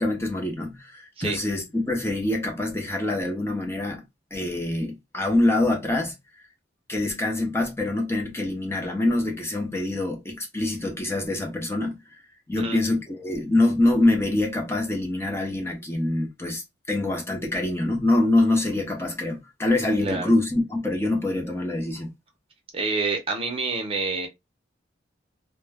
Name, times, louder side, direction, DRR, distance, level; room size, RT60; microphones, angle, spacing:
voice 1, 0.0-4.0 4.3-6.1 6.9-12.0 12.5-22.1, left 2 dB, 15° left, 0.6 m, -25 dB
voice 2, 22.7-24.3, right 3 dB, 30° right, 0.6 m, -27 dB
2.2 x 2.2 x 3.3 m
head